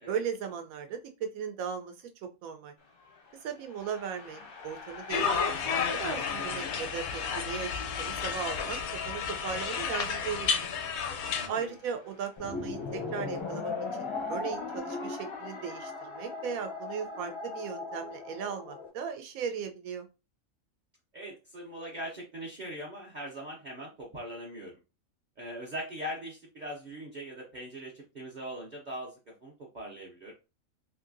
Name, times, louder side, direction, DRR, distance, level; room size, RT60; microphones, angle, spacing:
voice 1, 0.1-2.7 3.4-7.7 8.0-8.8 9.0-10.7 11.5-13.7 14.0-20.1, right 7 dB, 80° right, 7 dB, 1.1 m, -37 dB
sound 1, 2.8-14.3, left 5 dB, 90° left, 1.4 m, -49 dB
sound 2, 5.1-11.5, left 6 dB, 65° left, 0.7 m, -32 dB
voice 2, 11.3-11.8 21.1-24.7 25.4-30.3, equal, 45° right, -3 dB, 0.7 m, -41 dB
sound 3, 12.4-18.9, left 3 dB, 35° left, 0.5 m, -37 dB
3.2 x 2.7 x 2.5 m, 0.29 s
omnidirectional pair, 1.4 m